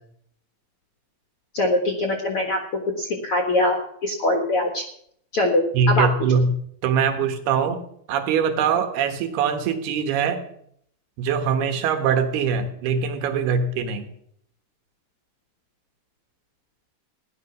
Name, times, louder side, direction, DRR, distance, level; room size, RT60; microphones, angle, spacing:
voice 1, 1.5-2.6 3.0-4.8 5.3-6.1, left 1 dB, 50° left, 2 dB, 1.9 m, -22 dB
voice 2, 5.7-6.5 6.8-7.8 8.1-10.4 11.2-14.1, right 6 dB, 85° right, 7 dB, 3.4 m, -22 dB
17.0 x 11.5 x 6.1 m, 0.69 s
omnidirectional pair, 4.4 m